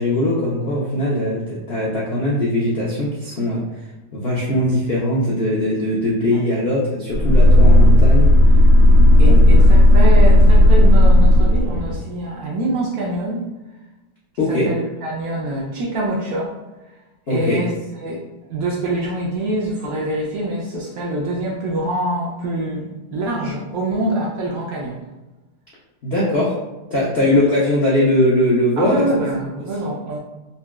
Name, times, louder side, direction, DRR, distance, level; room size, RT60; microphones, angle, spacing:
voice 1, 0.0-3.6 4.1-8.4 9.3-9.4 14.4-14.7 17.3-17.6 26.0-26.6 26.9-29.0, left 1 dB, 85° left, -7 dB, 0.5 m, -20 dB
sound 1, 7.1-12.0, left 1 dB, 85° right, 1.6 m, -11 dB
voice 2, 9.2-13.5 14.5-16.5 17.3-17.7 18.0-18.2 18.5-25.1 27.2-27.4 28.8-30.2, right 1 dB, 70° right, -4 dB, 0.9 m, -25 dB
3.8 x 2.3 x 2.2 m, 1.1 s
omnidirectional pair, 2.0 m